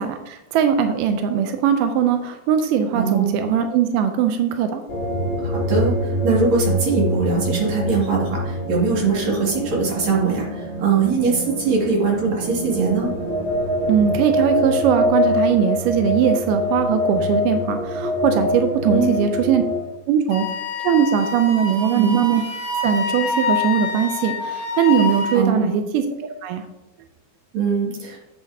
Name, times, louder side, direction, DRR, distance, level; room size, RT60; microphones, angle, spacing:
voice 1, 0.0-4.8 13.9-19.6 20.1-20.4 20.8-22.4 22.8-26.1 26.4-26.6, right 8 dB, 85° right, 6 dB, 1.9 m, -20 dB
voice 2, 2.9-3.4 5.4-13.1 18.9-19.1 21.9-22.2 25.3-25.7 27.5-28.2, right 4 dB, 50° right, -4 dB, 3.2 m, -21 dB
sound 1, 4.9-19.8, left 1 dB, 45° left, 2.9 m, -24 dB
Wind instrument woodwind instrument, 20.3-25.4, left 4 dB, 80° left, 3.0 m, -26 dB
8.9 x 8.0 x 2.7 m, 0.97 s
omnidirectional pair, 4.3 m